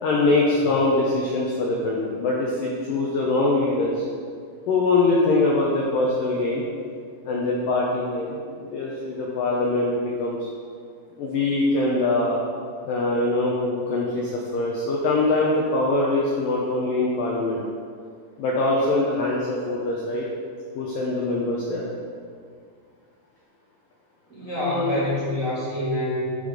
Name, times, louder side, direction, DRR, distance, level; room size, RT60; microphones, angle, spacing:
voice 1, 0.0-4.0 4.7-6.6 7.3-10.4 11.2-12.4 12.8-17.6 18.4-20.3 20.8-21.9 24.5-25.0, left 2 dB, 80° left, -3 dB, 1.9 m, -23 dB
voice 2, 24.3-26.5, left 1 dB, 70° right, -9 dB, 0.8 m, -27 dB
10.0 x 5.6 x 6.6 m, 2.1 s
omnidirectional pair, 5.4 m